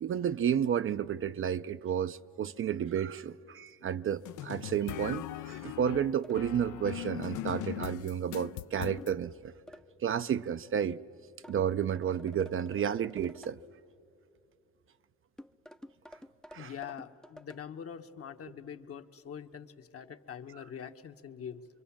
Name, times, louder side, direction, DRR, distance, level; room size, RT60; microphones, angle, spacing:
voice 1, 0.0-9.5 10.0-11.0 11.5-13.6 16.5-16.7, right 8 dB, 45° right, 0.5 m, -31 dB
sound 1, 4.3-9.1, left 14 dB, 80° left, 0.6 m, -40 dB
sound 2, 6.2-6.5 9.0-9.3 9.7-9.9 11.4-13.6 15.4-17.6, equal, ahead, 0.5 m, -52 dB
voice 2, 16.5-21.7, left 8 dB, 50° left, 1.0 m, -44 dB
26.0 x 23.0 x 7.1 m
cardioid pair, 90°, 30 cm